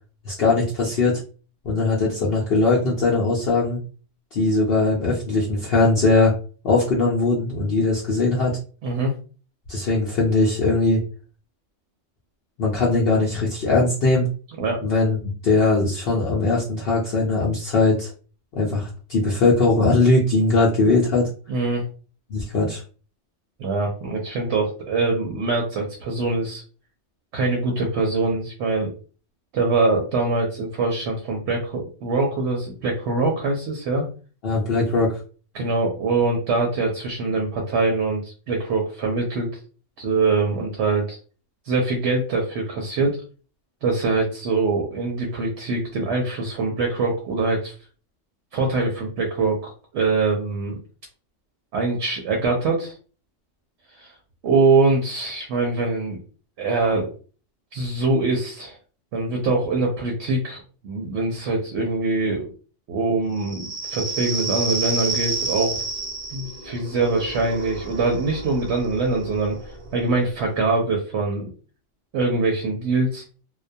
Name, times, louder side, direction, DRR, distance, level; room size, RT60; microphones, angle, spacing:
voice 1, 0.3-1.2 1.6-3.8 4.3-6.4 6.6-8.6 9.7-11.0 12.6-14.3 14.8-18.1 18.5-21.3 22.3-22.8 34.4-35.2, left 3 dB, 60° left, -4 dB, 0.7 m, -20 dB
voice 2, 8.8-9.1 14.6-14.8 21.5-21.8 23.6-26.6 27.3-28.9 29.5-34.0 35.5-39.5 40.0-41.2 41.6-43.2 43.8-47.7 48.5-50.8 51.7-52.9 54.0-54.1 54.4-56.2 56.6-57.1 57.7-58.8 59.1-62.5 62.9-65.8 66.3-69.6 69.9-71.5 72.1-73.2, right 3 dB, 70° right, 1 dB, 0.8 m, -23 dB
sound 1, 63.4-70.6, right 2 dB, 45° right, 0.4 m, -30 dB
2.2 x 2.2 x 2.6 m, 0.38 s
omnidirectional pair, 1.3 m